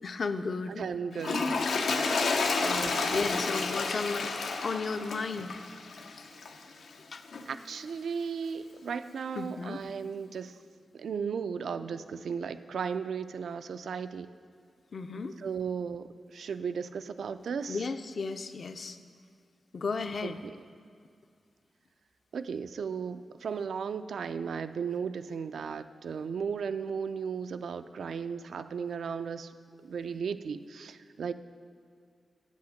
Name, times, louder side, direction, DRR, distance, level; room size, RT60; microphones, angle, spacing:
voice 1, 0.0-0.8 2.6-4.3 4.6-5.6 6.0-6.2 7.1-7.2 9.4-9.8 14.9-15.4 17.7-19.0 19.7-20.4, left 4 dB, 45° left, 9 dB, 0.4 m, -34 dB
voice 2, 0.7-1.7 1.9-2.3 2.6-3.1 7.5-10.5 10.9-14.3 15.4-16.1 16.3-17.8 20.4-20.6 22.3-29.5 29.8-31.3, right 6 dB, 80° right, 11 dB, 0.3 m, -35 dB
Toilet flush, 1.1-6.6 7.3-7.4, left 4 dB, 90° left, 0.8 m, -30 dB
8.5 x 8.1 x 6.4 m, 2.3 s
wide cardioid pair, 175°, 0 cm